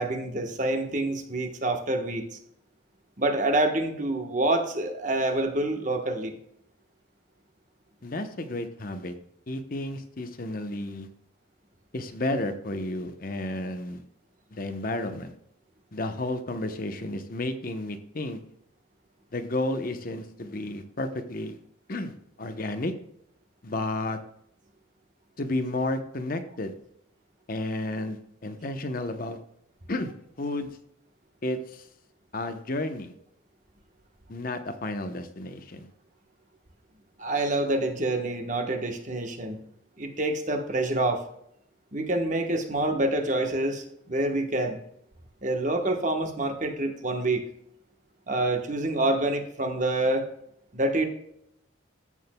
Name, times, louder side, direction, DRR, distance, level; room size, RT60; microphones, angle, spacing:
voice 1, 0.0-2.2 3.2-6.3 37.2-39.6 40.0-41.2 41.9-44.8 45.4-47.5 48.3-50.2 50.7-51.1, right 2 dB, 40° right, 5 dB, 1.1 m, -27 dB
voice 2, 8.0-9.1 9.5-11.1 11.9-14.0 14.5-15.3 15.9-18.4 19.3-21.6 21.9-22.9 23.6-24.2 25.4-26.7 27.5-29.4 29.9-30.1 30.4-30.7 31.4-31.9 32.3-33.1 34.3-35.9, left 2 dB, 45° left, 7 dB, 0.8 m, -32 dB
14.5 x 6.3 x 2.2 m, 0.72 s
head